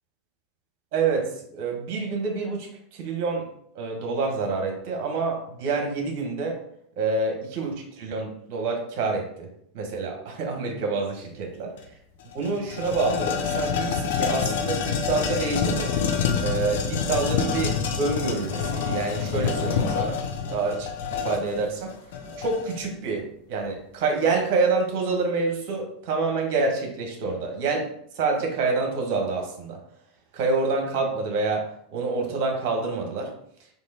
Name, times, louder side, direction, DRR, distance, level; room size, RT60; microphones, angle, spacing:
voice 1, 0.9-3.5 3.7-6.6 7.0-9.5 9.7-11.7 12.3-15.9 16.4-20.2 20.5-21.9 22.4-27.9 28.1-29.8 30.3-31.6 31.9-33.3, right 4 dB, 60° right, 2 dB, 1.3 m, -27 dB
sound 1, 11.8-11.9 12.2-22.9, left 6 dB, 70° left, 0.6 m, -27 dB
3.6 x 2.9 x 4.2 m, 0.68 s
hypercardioid pair, 90°, 0 cm